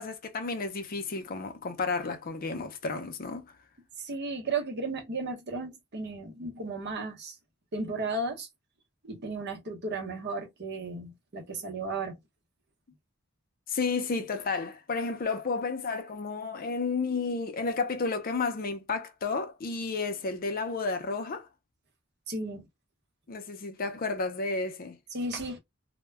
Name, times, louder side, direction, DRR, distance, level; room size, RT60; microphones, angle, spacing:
voice 1, 0.0-3.5 13.7-21.5 23.3-25.0, left 4 dB, 45° left, 0.5 m, -32 dB
voice 2, 4.0-7.4 7.7-8.5 9.0-12.2 22.3-22.7 25.1-25.6, right 3 dB, 55° right, 0.8 m, -34 dB
2.1 x 2.1 x 3.3 m
head